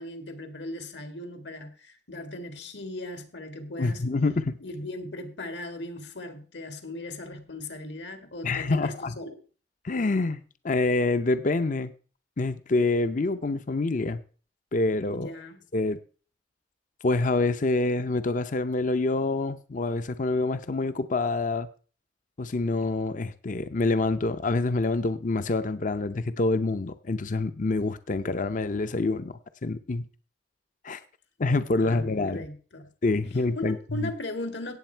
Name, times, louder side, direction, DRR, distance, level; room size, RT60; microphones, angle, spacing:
voice 1, 0.0-4.1 4.6-9.4 15.1-15.6 31.7-32.9 33.6-34.8, left 1 dB, 70° left, 2.0 m, -38 dB
voice 2, 3.8-4.6 8.4-9.1 9.8-11.9 12.4-14.2 14.7-15.3 15.7-16.0 17.0-21.7 22.4-30.0 30.8-31.0 31.4-32.5 33.0-33.8 34.0-34.1, left 3 dB, 45° left, 0.7 m, -26 dB
16.5 x 7.9 x 4.5 m
head